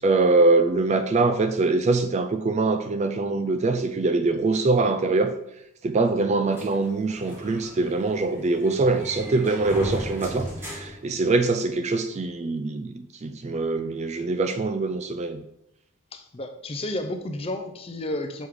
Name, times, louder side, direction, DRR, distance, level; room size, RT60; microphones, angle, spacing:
voice 1, 0.0-5.3 5.8-15.4, right 3 dB, 30° right, 8 dB, 0.3 m, -23 dB
sound 1, 6.5-11.8, equal, 10° right, 1.3 m, -37 dB
voice 2, 16.1-18.5, left 1 dB, 25° left, 6 dB, 0.5 m, -32 dB
6.2 x 3.6 x 4.9 m, 0.80 s
head